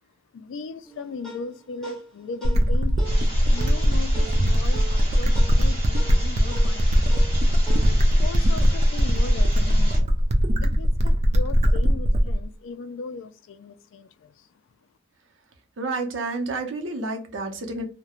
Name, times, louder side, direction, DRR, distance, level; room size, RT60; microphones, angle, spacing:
voice 1, 0.3-7.2 8.2-14.5, left 4 dB, 90° left, 0.3 m, -38 dB
sound 1, 0.8-9.6, right 3 dB, ahead, 0.9 m, -43 dB
sound 2, 2.4-12.4, equal, 35° right, 0.3 m, -20 dB
sound 3, 3.0-10.0, right 1 dB, 25° left, 1.0 m, -38 dB
voice 2, 15.8-17.8, right 3 dB, 85° right, 0.6 m, -29 dB
2.3 x 2.1 x 2.8 m
head